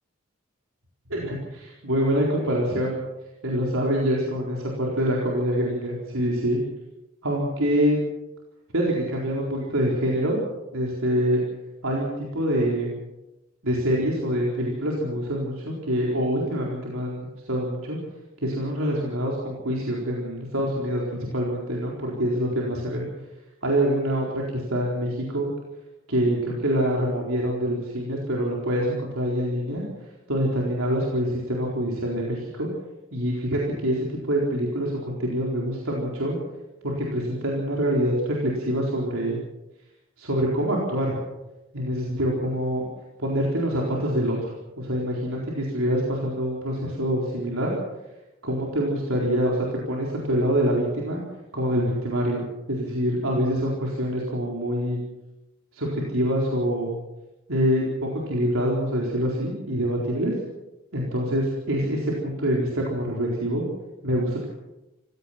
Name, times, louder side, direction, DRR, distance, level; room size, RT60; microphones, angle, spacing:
voice 1, 1.1-3.0 3.4-6.6 7.2-8.0 8.7-10.4 10.7-11.4 11.8-12.9 13.6-18.0 18.4-23.1 23.6-25.5 26.1-29.8 30.3-32.7 33.1-36.4 36.8-39.4 40.2-41.2 41.7-42.9 43.2-44.4 44.8-47.7 48.4-51.2 51.5-55.0 55.7-56.9 57.5-60.3 60.9-63.6 64.0-64.4, equal, 75° right, -3 dB, 4.3 m, -25 dB
26.0 x 17.0 x 5.9 m, 0.98 s
head